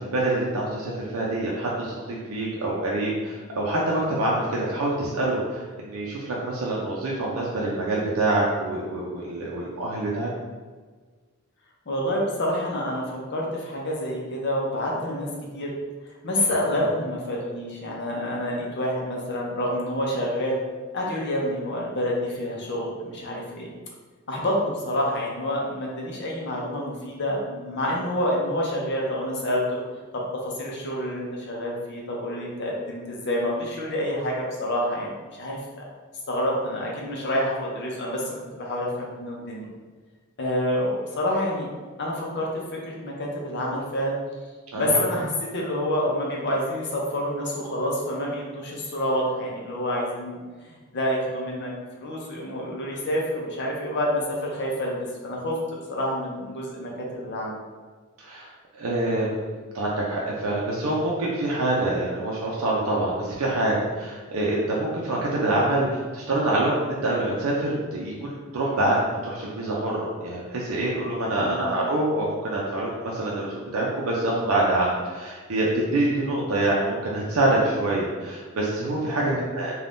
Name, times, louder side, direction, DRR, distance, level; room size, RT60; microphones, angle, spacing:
voice 1, 0.0-10.3 44.7-45.0 58.2-58.5 58.7-79.7, right 2 dB, 75° right, -4 dB, 0.5 m, -26 dB
voice 2, 11.9-15.3 15.5-15.7 16.2-20.6 20.9-23.7 24.3-29.8 30.1-35.1 35.4-35.6 36.3-39.7 40.4-41.7 42.0-44.2 44.7-50.4 50.9-55.6 55.9-57.6 71.4-71.9 79.2-79.5, left 1 dB, 55° left, -2 dB, 0.6 m, -28 dB
2.6 x 2.3 x 3.4 m, 1.4 s
head